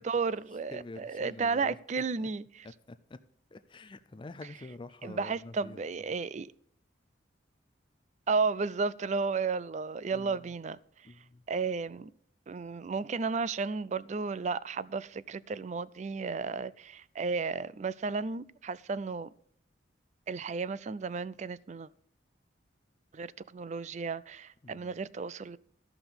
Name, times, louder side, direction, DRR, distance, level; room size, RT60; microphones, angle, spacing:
voice 1, 0.0-2.7 5.0-6.5 8.3-11.1 11.5-12.1 12.5-19.3 20.3-21.9 23.1-25.6, right 4 dB, 35° right, 0.4 m, -33 dB
voice 2, 0.7-1.8 2.9-3.2 3.5-5.8 10.1-10.4 11.0-11.4 24.6-25.0, left 2 dB, 25° left, 0.4 m, -47 dB
13.0 x 5.9 x 6.9 m
head